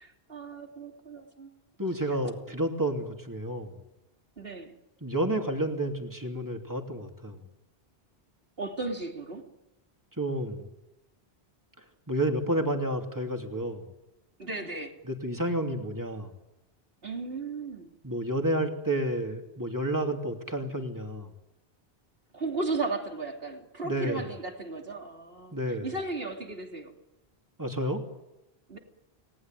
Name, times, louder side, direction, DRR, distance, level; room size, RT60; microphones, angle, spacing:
voice 1, 0.0-1.5 4.4-4.8 8.6-9.4 14.4-15.0 17.0-17.9 22.3-26.9 28.7-28.8, right 3 dB, 65° right, 3 dB, 3.4 m, -35 dB
voice 2, 1.8-3.8 5.0-7.4 10.2-10.7 12.1-13.8 15.1-16.3 18.0-21.3 23.8-24.2 25.5-25.9 27.6-28.0, right 1 dB, 15° right, 3 dB, 3.0 m, -30 dB
30.0 x 19.5 x 9.2 m, 0.99 s
omnidirectional pair, 1.1 m